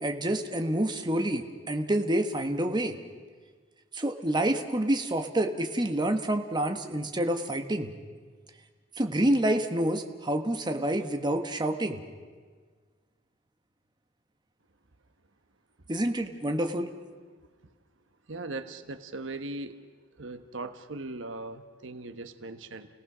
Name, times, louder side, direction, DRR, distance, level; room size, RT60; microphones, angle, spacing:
voice 1, 0.0-2.9 3.9-7.9 9.0-12.0 15.9-16.9, right 1 dB, 25° right, 5 dB, 1.3 m, -28 dB
voice 2, 18.3-19.8 20.2-22.9, right 2 dB, 90° right, 9 dB, 1.2 m, -39 dB
30.0 x 18.0 x 6.2 m, 1.5 s
head